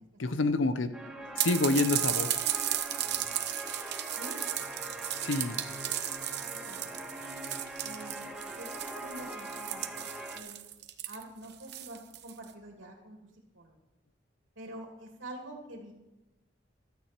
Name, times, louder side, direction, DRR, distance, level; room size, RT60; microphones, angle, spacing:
voice 1, 0.2-0.9 1.4-2.4 5.2-5.6, left 3 dB, 80° left, 11 dB, 0.8 m, -28 dB
sound 1, 0.9-10.4, right 1 dB, 5° right, 1.5 m, -42 dB
voice 2, 1.0-1.4 4.1-4.4 6.6-7.1 7.8-10.1 10.3-10.6 11.1-13.8 14.6-15.9, right 1 dB, 90° right, 1 dB, 2.7 m, -47 dB
sound 2, 1.4-12.4, right 12 dB, 60° right, 1.0 m, -35 dB
15.5 x 12.5 x 4.5 m, 0.98 s
head